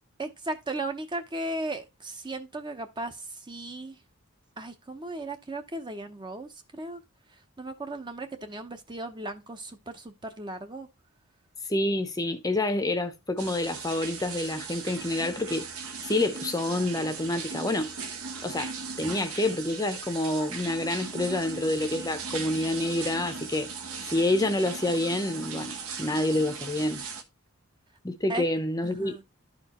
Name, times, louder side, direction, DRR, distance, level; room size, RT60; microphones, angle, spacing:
voice 1, 0.2-4.0 4.6-7.0 7.6-10.9 19.0-19.3 28.3-28.5 28.8-29.2, right 2 dB, 20° right, 0.7 m, -36 dB
voice 2, 11.7-15.7 16.0-17.9 18.4-18.7 19.0-23.7 24.1-27.0 28.0-29.2, left 1 dB, 15° left, 0.7 m, -28 dB
sound 1, 13.4-27.2, right 5 dB, 75° right, 1.2 m, -38 dB
12.0 x 4.5 x 2.9 m
head